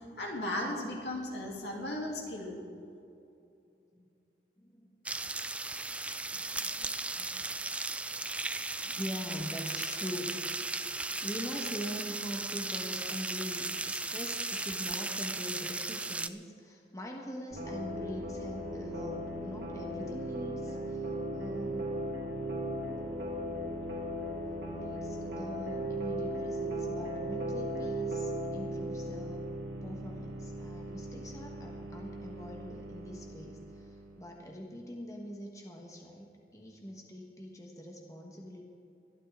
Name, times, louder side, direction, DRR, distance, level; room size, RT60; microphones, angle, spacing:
voice 1, 0.2-2.6, left 1 dB, 80° left, -1 dB, 2.9 m, -36 dB
voice 2, 4.6-5.0 6.3-7.6 8.8-10.6 10.9-21.9 24.4-29.4 29.8-38.6, equal, 20° left, 0 dB, 1.3 m, -43 dB
sound 1, 5.1-16.3, right 3 dB, 5° right, 0.3 m, -36 dB
sound 2, 17.5-34.3, right 1 dB, 85° right, 3.2 m, -37 dB
22.0 x 12.5 x 3.7 m, 2.7 s
head